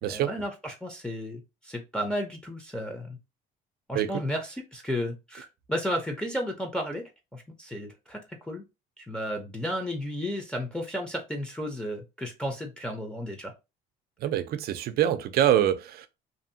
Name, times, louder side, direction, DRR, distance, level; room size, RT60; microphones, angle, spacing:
voice 1, 0.0-3.2 3.9-8.6 9.0-13.5, equal, 5° left, 0.7 m, -33 dB
voice 2, 14.2-16.1, right 11 dB, 65° right, 0.5 m, -25 dB
2.7 x 2.6 x 2.6 m
cardioid pair, 110°, 17 cm